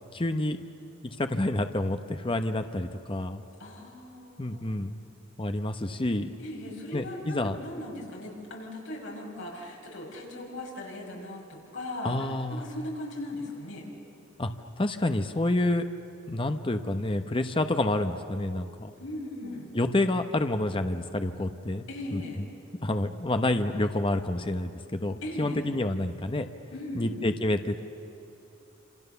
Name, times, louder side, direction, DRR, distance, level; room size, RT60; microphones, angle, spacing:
voice 1, 0.1-0.6 1.0-3.4 4.4-5.0 5.4-6.3 6.9-7.6 12.0-12.7 14.4-14.5 14.8-15.8 16.3-18.9 19.7-21.8 22.1-22.2 22.8-26.5 26.9-27.8, left 1 dB, 25° left, 7 dB, 0.9 m, -28 dB
voice 2, 3.6-4.7 6.4-13.9 19.0-19.7 21.9-22.4 25.2-25.6 26.7-27.3, left 1 dB, 65° left, -1 dB, 6.3 m, -38 dB
27.5 x 27.0 x 7.0 m, 2.9 s
head